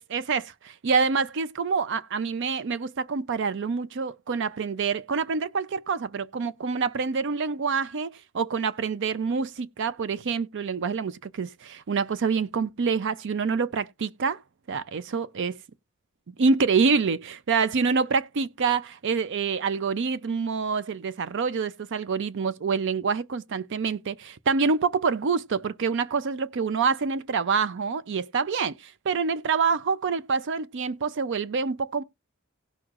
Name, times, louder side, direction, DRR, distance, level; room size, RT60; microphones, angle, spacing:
voice 1, 0.0-14.4 14.7-15.6 16.4-32.0, right 5 dB, 60° right, 0.5 m, -26 dB
17.5 x 6.3 x 2.4 m
head